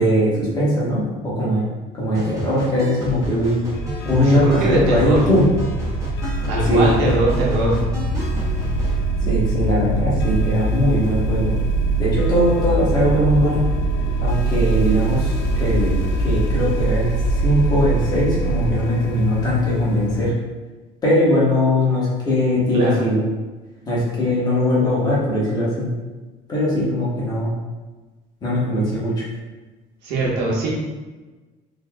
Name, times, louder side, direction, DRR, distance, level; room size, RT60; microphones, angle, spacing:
voice 1, 0.0-1.6 1.9-3.6 4.0-5.5 6.7-6.9 9.3-11.5 12.0-13.6 14.2-15.9 16.2-17.1 17.4-20.3 21.0-23.3 23.9-25.9 26.5-27.5 28.4-29.1, left 1 dB, 20° left, -7 dB, 1.2 m, -20 dB
sound 1, 2.1-9.0, equal, 15° right, 0.9 m, -31 dB
sound 2, 3.7-20.3, right 1 dB, 80° left, 0.5 m, -22 dB
voice 2, 4.2-5.2 6.5-7.8 22.7-23.0 30.0-30.7, right 2 dB, 80° right, -4 dB, 1.2 m, -21 dB
4.3 x 3.0 x 2.3 m, 1.2 s
cardioid pair, 155°, 18 cm